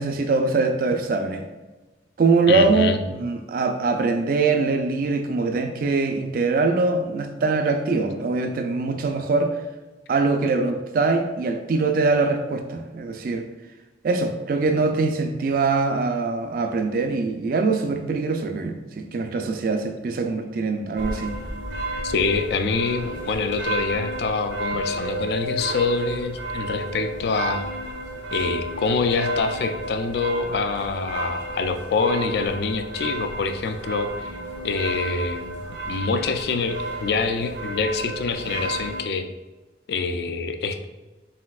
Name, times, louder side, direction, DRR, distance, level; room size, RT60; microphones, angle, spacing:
voice 1, 0.0-1.5 2.2-9.6 10.1-13.5 14.0-21.4, right 3 dB, 50° right, 6 dB, 0.3 m, -23 dB
voice 2, 2.5-3.0 22.0-27.6 28.3-34.3 34.6-39.3 39.9-40.9, left 4 dB, 60° left, 8 dB, 0.3 m, -25 dB
sound 1, 21.0-39.0, right 1 dB, 80° right, 0.7 m, -32 dB
4.2 x 4.0 x 2.3 m, 1.1 s
head